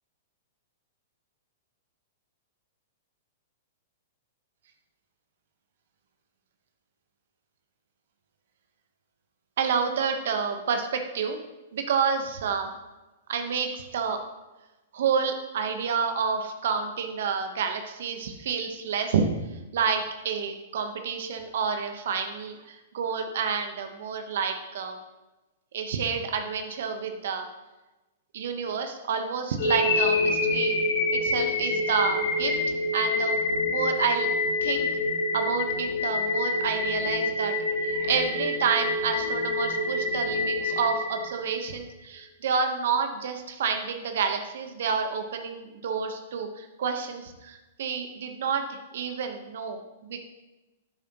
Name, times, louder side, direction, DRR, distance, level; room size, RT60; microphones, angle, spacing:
voice 1, 9.6-11.4 11.7-12.7 13.3-14.2 14.9-19.2 19.5-25.0 25.7-27.5 28.3-30.8 31.1-32.6 32.9-33.4 33.7-34.3 34.6-34.9 35.3-50.2, right 6 dB, 65° right, 6 dB, 1.1 m, -29 dB
sound 1, 29.6-41.6, left 2 dB, 70° left, 2.0 m, -27 dB
10.5 x 8.5 x 3.0 m, 1.1 s
hypercardioid pair, 115°, 0 cm